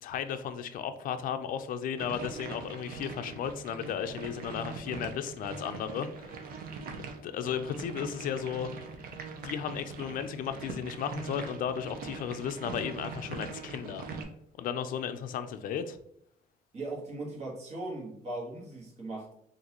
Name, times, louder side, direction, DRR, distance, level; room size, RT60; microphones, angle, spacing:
voice 1, 0.0-6.4 7.0-8.7 9.4-14.1 14.6-16.0, left 8 dB, 55° left, 9 dB, 0.4 m, -35 dB
sound 1, 2.0-14.2, right 4 dB, 60° right, 0.7 m, -42 dB
voice 2, 16.7-19.3, right 2 dB, 40° right, -2 dB, 1.3 m, -38 dB
3.9 x 2.6 x 2.9 m, 0.72 s
cardioid pair, 110°, 17 cm